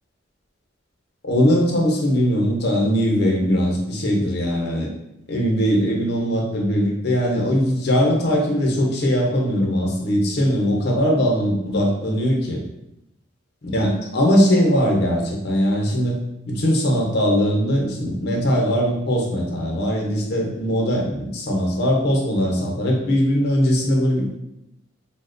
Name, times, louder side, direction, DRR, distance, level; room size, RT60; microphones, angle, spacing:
voice 1, 1.2-4.9 5.3-12.6 13.6-16.2 16.5-24.3, equal, 55° left, -1 dB, 0.6 m, -20 dB
3.9 x 2.1 x 2.5 m, 0.87 s
head